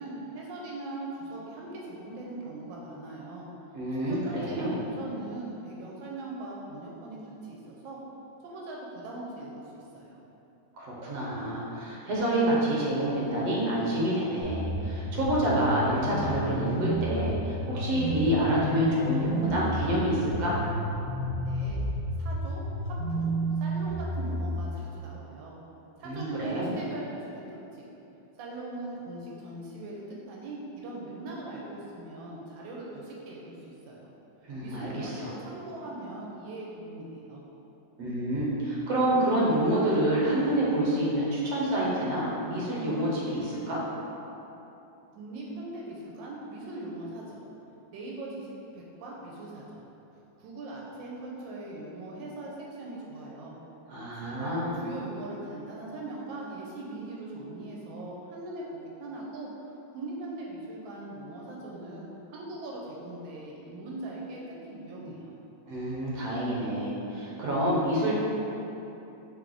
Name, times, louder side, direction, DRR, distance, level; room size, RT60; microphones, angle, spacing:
voice 1, 0.0-3.5 3.9-8.0 8.4-10.2 21.4-21.8 22.2-25.6 26.0-27.4 27.7-27.9 28.4-34.1 34.6-37.4 45.1-47.4 47.9-49.9 50.4-53.5 54.1-59.5 59.9-65.3, right 2 dB, 85° right, -3 dB, 1.3 m, -40 dB
voice 2, 3.7-4.8 10.8-20.6 26.0-26.7 34.5-35.3 38.0-43.8 53.9-54.7 65.7-68.1, right 1 dB, 65° right, -6 dB, 1.3 m, -28 dB
sound 1, 14.4-24.5, right 1 dB, 60° left, 0.5 m, -31 dB
3.4 x 3.2 x 3.8 m, 3.0 s
omnidirectional pair, 2.0 m